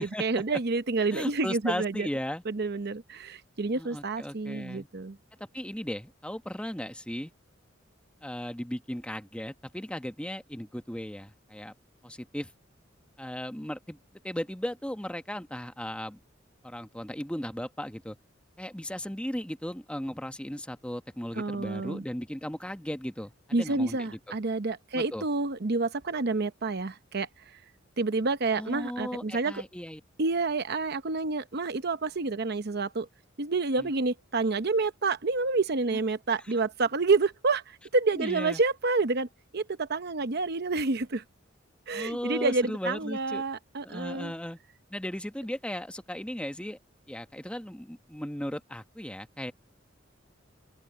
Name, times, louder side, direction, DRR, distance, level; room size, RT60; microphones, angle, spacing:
voice 1, 0.0-2.1 2.5-5.2 21.3-22.0 23.5-27.3 28.0-29.6 30.2-33.1 33.4-39.3 39.5-41.2 41.9-44.3, right 3 dB, 55° right, 0.9 m, -28 dB
voice 2, 1.1-2.4 3.7-4.9 5.4-7.3 8.2-11.7 12.0-12.5 13.2-14.0 14.2-16.2 16.6-18.2 18.6-24.3 24.9-25.2 28.6-30.0 33.8-33.9 35.9-36.0 38.1-38.6 41.9-43.4 43.8-44.6 44.9-46.8 47.1-49.5, equal, 5° left, 1.2 m, -36 dB
open air
head